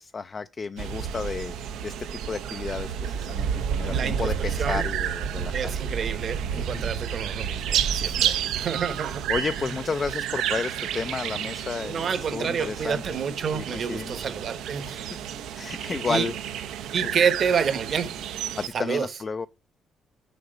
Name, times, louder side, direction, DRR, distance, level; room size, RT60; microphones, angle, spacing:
voice 1, 0.0-1.5 1.8-5.6 6.6-6.9 8.0-8.3 9.0-13.0 13.5-14.3 14.8-15.1 15.6-16.3 18.6-19.5, left 4 dB, 35° left, 0.3 m, -32 dB
sound 1, 0.8-18.7, right 8 dB, 90° right, 0.7 m, -30 dB
voice 2, 3.9-4.8 5.5-9.3 9.6-9.8 11.8-15.2 15.7-16.3 16.9-18.2 18.7-19.1, right 6 dB, 55° right, 1.1 m, -29 dB
7.1 x 6.6 x 5.0 m
cardioid pair, 90°, 0 cm